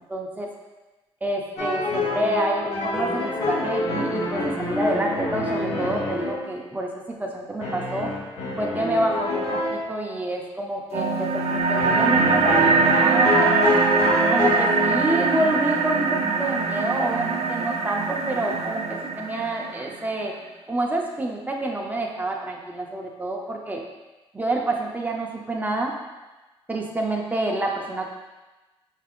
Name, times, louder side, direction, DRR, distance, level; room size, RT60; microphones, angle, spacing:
voice 1, 0.1-0.5 1.2-8.1 8.6-13.8 14.3-20.3 20.7-23.8 24.3-25.9 26.7-28.1, right 1 dB, 15° right, 0 dB, 0.7 m, -27 dB
sound 1, 1.6-6.4 7.6-9.8 11.8-15.2, left 2 dB, 90° left, 1.2 m, -26 dB
sound 2, 10.9-19.9, right 4 dB, 80° right, 0.4 m, -22 dB
5.9 x 3.3 x 2.5 m, 1.1 s
cardioid pair, 105°, 11 cm